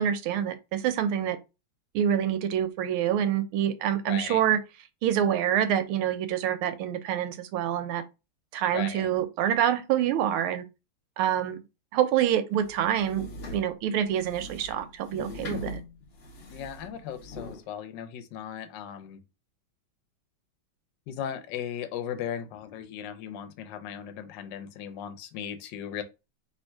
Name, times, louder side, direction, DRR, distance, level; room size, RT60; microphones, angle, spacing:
voice 1, 0.0-1.4 1.9-4.6 5.0-8.0 8.5-10.7 11.2-11.6 11.9-15.8, right 10 dB, 85° right, 1.5 m, -26 dB
voice 2, 4.1-4.4 8.7-9.1 16.5-19.2 21.1-26.0, left 9 dB, 65° left, 1.2 m, -37 dB
sound 1, 12.6-17.6, left 2 dB, 85° left, 0.5 m, -41 dB
3.5 x 2.8 x 4.5 m
omnidirectional pair, 2.3 m